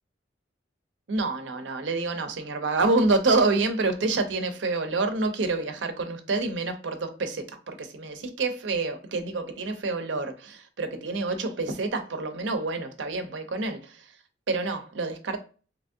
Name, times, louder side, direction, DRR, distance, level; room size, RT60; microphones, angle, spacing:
voice 1, 1.1-14.1 14.5-15.4, right 3 dB, 85° right, 0.6 m, -27 dB
3.4 x 2.9 x 2.6 m
head